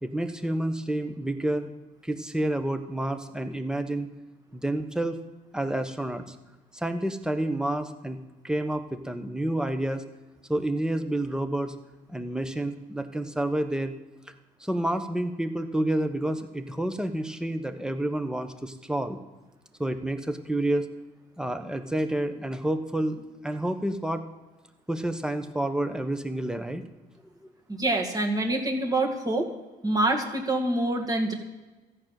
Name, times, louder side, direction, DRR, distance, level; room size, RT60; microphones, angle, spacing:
voice 1, 0.0-1.7 2.0-4.1 4.5-5.2 5.5-6.4 6.7-8.2 8.4-10.1 10.5-11.7 12.1-13.9 14.6-19.2 19.8-20.9 21.4-24.2 24.9-26.8, right 1 dB, 5° right, 8 dB, 1.0 m, -29 dB
voice 2, 27.7-29.5 29.8-31.3, right 2 dB, 20° right, 1 dB, 2.1 m, -26 dB
13.5 x 6.6 x 9.1 m, 1.2 s
cardioid pair, 110°, 17 cm